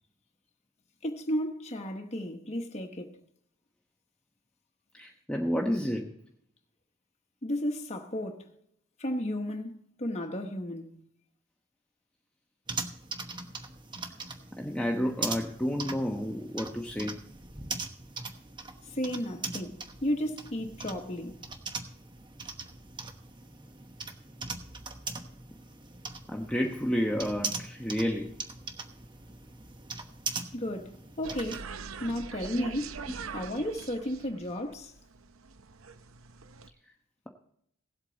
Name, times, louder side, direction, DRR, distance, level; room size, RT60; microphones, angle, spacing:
voice 1, 1.0-3.2 7.4-8.5 9.0-11.0 18.8-21.4 30.5-32.9 33.3-34.9, equal, 30° left, 1.1 m, -34 dB
voice 2, 4.9-6.1 14.6-17.2 26.3-28.4 32.5-32.7, equal, 5° left, 0.9 m, -30 dB
sound 1, 12.7-31.6, right 4 dB, 20° right, 1.0 m, -40 dB
sound 2, 31.2-36.7, right 5 dB, 80° right, 0.7 m, -43 dB
17.5 x 8.2 x 4.0 m
head